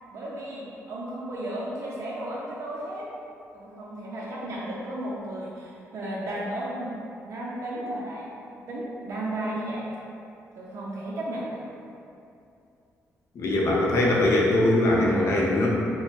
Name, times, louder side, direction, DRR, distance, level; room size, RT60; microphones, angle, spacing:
voice 1, 0.1-3.1 3.5-8.2 8.7-9.9 10.6-11.6, right 1 dB, 60° right, -6 dB, 0.5 m, -34 dB
voice 2, 13.3-15.7, left 1 dB, 60° left, -3 dB, 0.6 m, -21 dB
4.4 x 2.0 x 2.8 m, 2.6 s
cardioid pair, 140°, 6 cm